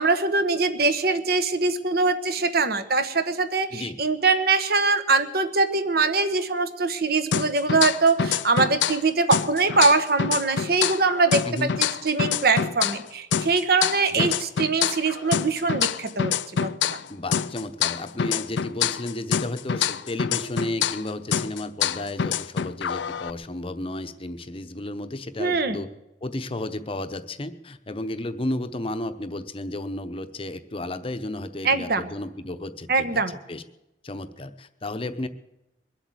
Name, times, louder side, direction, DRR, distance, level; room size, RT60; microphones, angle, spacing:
voice 1, 0.0-16.7 25.4-25.8 31.6-32.1 32.9-33.4, right 3 dB, 60° right, 9 dB, 1.1 m, -23 dB
sound 1, 7.3-9.0 9.3-13.0 13.3-17.1 17.3-21.0 21.3-23.3, left 8 dB, 90° left, 0.5 m, -26 dB
voice 2, 17.1-25.9 26.2-33.1 33.5-33.6 34.0-35.3, left 1 dB, 30° left, 10 dB, 0.8 m, -33 dB
22.0 x 8.2 x 7.9 m, 0.93 s
head